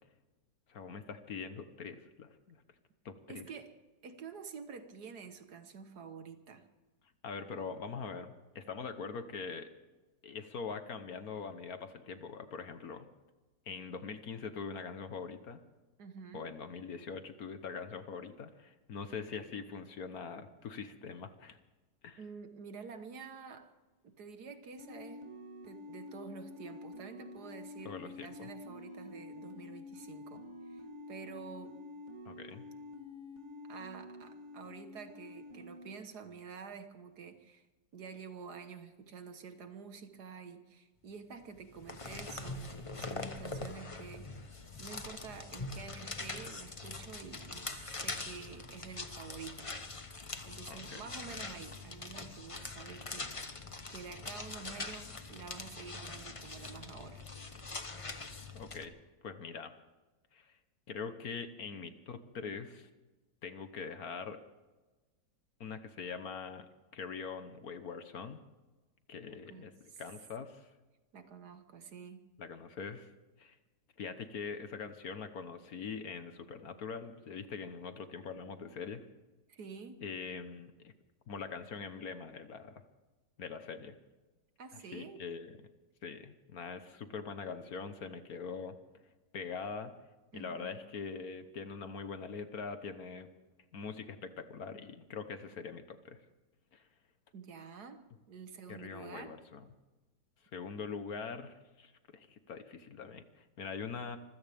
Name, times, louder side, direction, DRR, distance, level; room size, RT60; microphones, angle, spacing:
voice 1, 0.7-2.6 3.0-3.5 7.2-9.7 10.2-13.1 13.7-15.6 16.3-21.6 22.0-22.2 27.8-28.5 32.2-32.6 50.7-51.0 58.5-58.9 59.2-59.7 60.3-60.6 60.9-62.9 63.4-64.4 65.6-66.7 66.9-68.4 69.1-70.7 72.4-73.1 73.4-73.6 74.0-79.1 80.0-80.9 81.3-82.7 83.4-84.0 84.7-85.5 86.0-88.8 89.3-89.9 90.3-93.3 93.7-96.2 96.7-96.9 98.7-99.7 100.5-104.2, left 5 dB, 55° left, 9 dB, 1.5 m, -43 dB
voice 2, 3.3-3.7 4.0-6.7 16.0-16.5 22.2-23.7 24.0-25.3 25.6-30.4 30.7-31.8 33.7-37.7 37.9-44.3 44.8-49.7 50.4-53.6 53.9-57.2 69.3-70.0 71.1-72.2 79.5-80.0 84.6-85.2 90.3-90.8 97.3-98.0 98.3-99.4, right 6 dB, 65° right, 8 dB, 1.8 m, -49 dB
sound 1, 24.8-35.9, left 3 dB, 40° right, 2.9 m, -49 dB
sound 2, 41.6-58.9, left 3 dB, 25° left, 0.9 m, -43 dB
25.0 x 16.0 x 3.5 m, 1.2 s
omnidirectional pair, 1.9 m